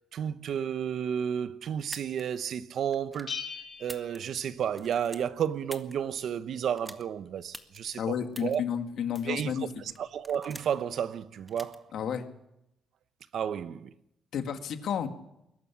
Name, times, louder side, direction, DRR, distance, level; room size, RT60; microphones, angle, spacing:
voice 1, 0.1-3.4 3.8-8.6 9.3-11.8 13.3-13.9, right 8 dB, 65° right, 0.9 m, -32 dB
sound 1, 1.8-2.2 2.9-3.3 3.8-4.5 4.7-5.9 6.8-7.0 7.5-7.8 8.3-8.6 9.1-9.4 9.9-10.8 11.5-11.8, right 1 dB, 10° right, 1.7 m, -45 dB
Bell, 3.3-5.1, left 6 dB, 50° left, 2.3 m, -41 dB
voice 2, 8.0-9.7 11.9-12.2 14.3-15.1, left 8 dB, 70° left, 2.0 m, -31 dB
22.0 x 12.0 x 10.0 m
cardioid pair, 90°, 0 cm